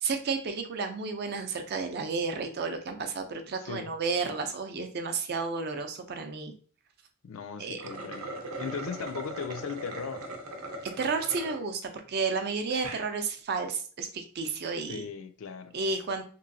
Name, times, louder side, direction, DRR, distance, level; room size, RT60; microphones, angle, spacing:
voice 1, 0.0-6.5 7.6-7.8 10.8-15.1 15.7-16.2, right 4 dB, 50° right, 0.4 m, -32 dB
voice 2, 3.6-3.9 7.2-10.3 14.9-15.7, left 5 dB, 70° left, 0.4 m, -38 dB
sound 1, 7.7-11.6 12.1-12.2 12.7-13.1, right 2 dB, 90° right, 0.6 m, -40 dB
3.0 x 2.6 x 2.6 m
head